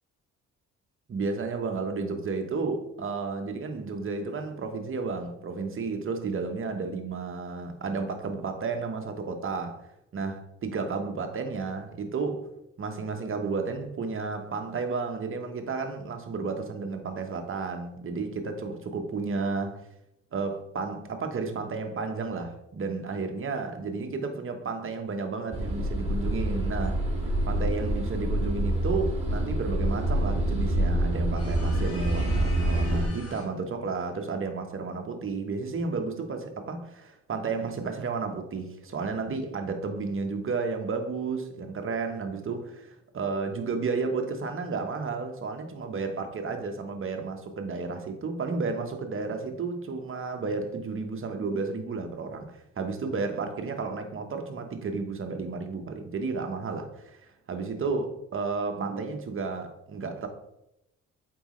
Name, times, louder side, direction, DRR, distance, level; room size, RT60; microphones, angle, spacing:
voice 1, 1.1-9.8 10.1-12.5 12.8-19.8 20.3-27.0 27.5-60.3, right 4 dB, 45° right, 5 dB, 1.2 m, -32 dB
sound 1, 25.5-33.1, right 1 dB, 20° right, 2.1 m, -27 dB
sound 2, 31.4-33.6, left 2 dB, 50° left, 1.7 m, -44 dB
7.7 x 4.8 x 3.2 m, 0.83 s
cardioid pair, 90°, 30 cm